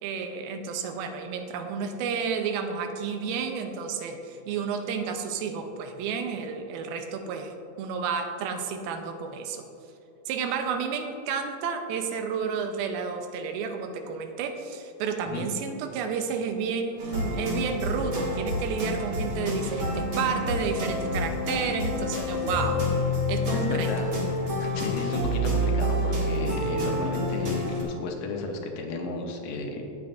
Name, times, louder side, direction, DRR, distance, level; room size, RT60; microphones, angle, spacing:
voice 1, 0.0-9.6 10.3-22.8 23.3-23.9, right 6 dB, 90° right, 6 dB, 2.6 m, -31 dB
sound 1, 17.0-27.8, left 1 dB, 40° right, 2.0 m, -28 dB
voice 2, 23.5-24.2 24.6-29.8, left 3 dB, 75° left, 2 dB, 2.4 m, -33 dB
16.5 x 7.6 x 2.6 m, 2.8 s
omnidirectional pair, 4.2 m